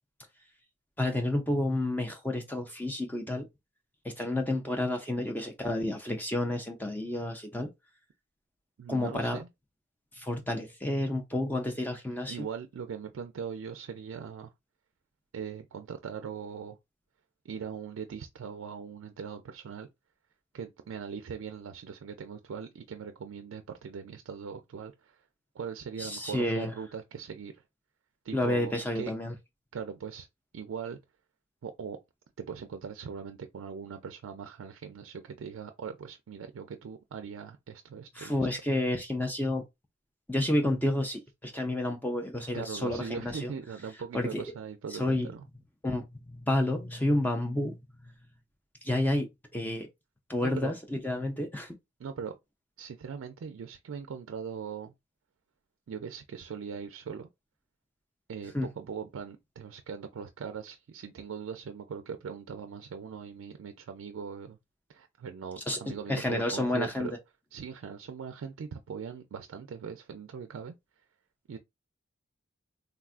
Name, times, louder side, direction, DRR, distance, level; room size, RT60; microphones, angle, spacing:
voice 1, 1.0-3.5 4.0-7.7 8.9-9.4 10.1-12.5 26.0-26.7 28.3-29.3 38.1-39.6 40.3-43.5 44.1-44.4 44.9-45.3 45.8-48.1 48.8-49.9 50.3-51.7 58.5-58.7 65.6-67.2, left 1 dB, 10° left, 0.4 m, -30 dB
voice 2, 8.8-9.5 12.3-14.5 15.3-16.8 17.4-19.9 20.5-25.2 25.6-27.6 28.2-29.1 29.7-30.3 30.5-31.0 31.6-32.0 32.4-38.5 42.5-45.4 50.4-50.7 52.0-52.4 52.8-54.9 55.9-57.3 58.3-64.6 64.9-67.1 67.5-70.7 71.5-71.6, right 6 dB, 85° right, 0.4 m, -40 dB
3.5 x 2.3 x 2.4 m
head